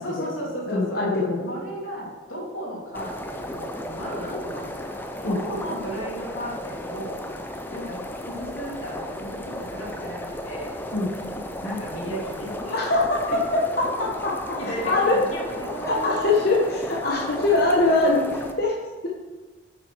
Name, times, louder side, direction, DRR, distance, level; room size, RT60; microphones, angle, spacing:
voice 1, 0.0-1.1 1.5-4.9 5.2-7.2 7.7-10.7 11.6-12.8 13.3-13.4 13.8-13.9 14.6-16.6 17.3-17.4, equal, 85° left, -4 dB, 3.1 m, -34 dB
voice 2, 0.7-1.5 5.2-5.4 10.9-11.1 12.7-15.2 15.9-18.8, left 2 dB, 50° left, -3 dB, 1.1 m, -23 dB
sound 1, 2.9-18.5, left 1 dB, 10° left, 0.5 m, -34 dB
9.4 x 6.5 x 4.6 m, 1.3 s
head